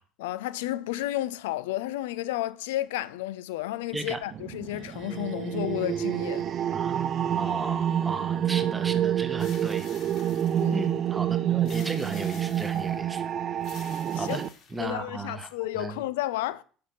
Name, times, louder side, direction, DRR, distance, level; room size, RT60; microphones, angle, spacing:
voice 1, 0.2-6.5 10.6-10.9 14.1-14.4 14.8-16.6, left 15 dB, 65° left, 0.4 m, -32 dB
sound 1, 4.3-14.5, right 10 dB, 45° right, 0.3 m, -28 dB
voice 2, 6.6-9.9 10.7-13.3 14.1-14.4 14.7-15.5 15.7-16.0, right 3 dB, 20° right, 1.1 m, -35 dB
sound 2, 9.4-10.9 11.7-13.0 13.6-15.1, left 6 dB, 50° left, 1.5 m, -49 dB
5.7 x 5.1 x 5.6 m
figure-of-eight pair, 60°, 0 cm